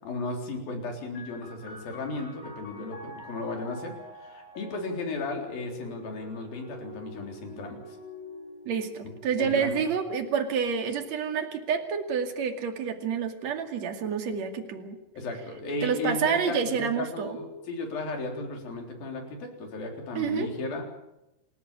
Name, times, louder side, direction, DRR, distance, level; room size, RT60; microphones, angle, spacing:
voice 1, 0.0-7.8 9.4-9.8 15.1-20.8, left 3 dB, 50° left, 3 dB, 5.4 m, -35 dB
sound 1, 1.1-14.4 15.2-16.0, equal, 35° left, 4.2 m, -48 dB
voice 2, 8.7-15.0 15.8-17.4 20.1-20.5, right 6 dB, 45° right, 5 dB, 2.8 m, -28 dB
28.0 x 14.5 x 8.6 m, 0.91 s
omnidirectional pair, 5.5 m